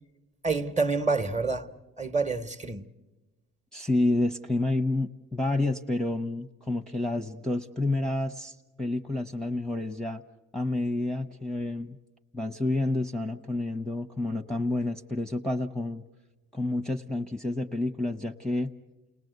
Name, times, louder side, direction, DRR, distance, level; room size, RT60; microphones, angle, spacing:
voice 1, 0.4-1.7 2.0-2.9, right 4 dB, 25° right, 1.1 m, -27 dB
voice 2, 3.7-10.2 10.5-12.0 12.3-16.0 16.5-18.7, left 2 dB, ahead, 0.7 m, -29 dB
29.5 x 20.0 x 8.0 m
cardioid pair, 90°, 30 cm